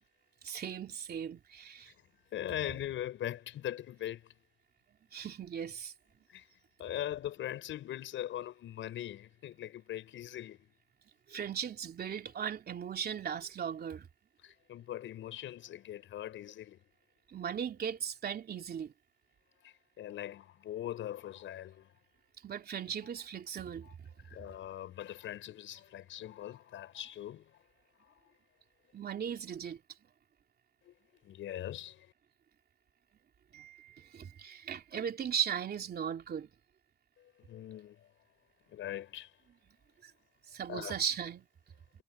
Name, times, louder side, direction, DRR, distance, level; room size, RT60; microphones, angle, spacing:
voice 1, 0.4-1.9 5.1-5.9 11.3-14.1 17.3-18.9 22.4-23.9 28.9-29.8 33.5-36.5 40.0-40.1 40.5-41.5, right 8 dB, 50° right, 3.0 m, -37 dB
voice 2, 2.3-4.3 6.3-6.5 6.8-10.7 14.4-16.8 19.6-21.9 23.0-23.1 23.8-23.9 24.2-27.6 28.0-28.3 30.8-30.9 31.2-32.1 37.2-38.1 38.7-39.3 40.7-40.9, left 12 dB, 75° left, 6.4 m, -41 dB
cardioid pair, 90°, 20 cm